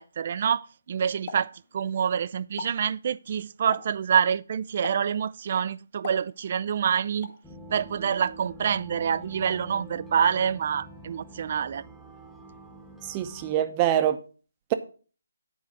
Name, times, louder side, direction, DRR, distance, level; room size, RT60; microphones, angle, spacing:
voice 1, 0.0-7.3 7.7-11.8, right 8 dB, 40° right, 0.4 m, -27 dB
Explosion, 1.3-2.1 2.4-2.9 3.7-4.1 4.8-5.2 6.0-6.7 7.2-7.5, left 5 dB, 40° left, 2.2 m, -41 dB
sound 1, 7.4-13.5, equal, ahead, 1.1 m, -46 dB
voice 2, 13.0-14.2, right 11 dB, 20° right, 0.8 m, -25 dB
9.9 x 4.7 x 6.2 m
hypercardioid pair, 160°, 0 cm